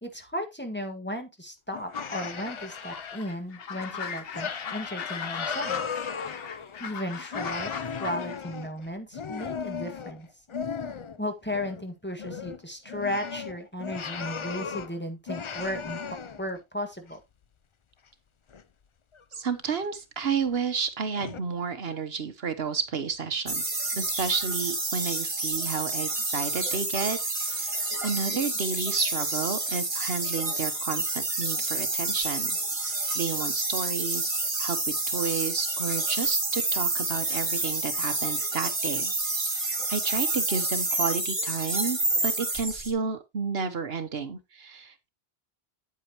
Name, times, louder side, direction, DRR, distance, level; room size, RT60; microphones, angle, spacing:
voice 1, 0.0-5.9 6.8-7.7 8.0-10.3 11.2-16.0 16.4-17.2, equal, 10° left, 1.8 m, -35 dB
sound 1, 1.7-3.3 3.8-3.9 4.3-7.0 7.3-11.2 11.5-11.9 12.1-15.0 15.3-16.6 17.1-17.2 18.5-18.6 19.1-19.4 19.8-19.9 20.6-20.7 21.1-21.4, left 6 dB, 40° left, 0.4 m, -36 dB
sound 2, 1.9-8.4, left 6 dB, 65° left, 1.1 m, -39 dB
voice 2, 19.3-23.6 24.0-32.6 32.8-45.1, right 5 dB, 70° right, 1.2 m, -32 dB
sound 3, 23.5-42.9, right 2 dB, 30° right, 1.7 m, -29 dB
8.8 x 8.6 x 2.9 m
omnidirectional pair, 1.1 m